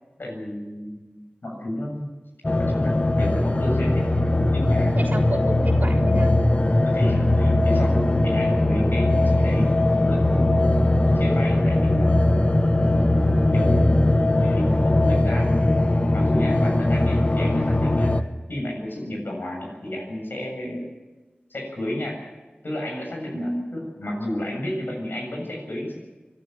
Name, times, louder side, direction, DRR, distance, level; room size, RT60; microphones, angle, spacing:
voice 1, 0.2-2.1 2.6-5.2 6.8-12.1 13.5-13.9 14.4-15.7 16.1-18.1 18.5-20.8 21.5-22.2 22.6-26.0, left 1 dB, 75° left, 1 dB, 7.5 m, -32 dB
sound 1, 2.4-18.2, left 1 dB, 35° left, 1.1 m, -20 dB
voice 2, 4.9-6.3 13.6-14.1 20.6-20.8 23.3-23.7, right 1 dB, 55° right, 2 dB, 3.2 m, -31 dB
24.5 x 12.5 x 9.3 m, 1.2 s
wide cardioid pair, 60°, 4 cm